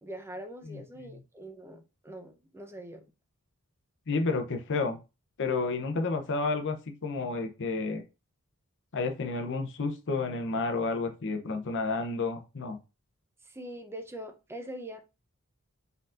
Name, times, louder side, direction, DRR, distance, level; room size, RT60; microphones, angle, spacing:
voice 1, 0.0-3.1 13.4-15.0, right 1 dB, 10° right, 0.6 m, -43 dB
voice 2, 4.1-5.0 5.4-8.0 8.9-12.8, left 3 dB, 60° left, 0.7 m, -31 dB
4.4 x 3.9 x 2.4 m
head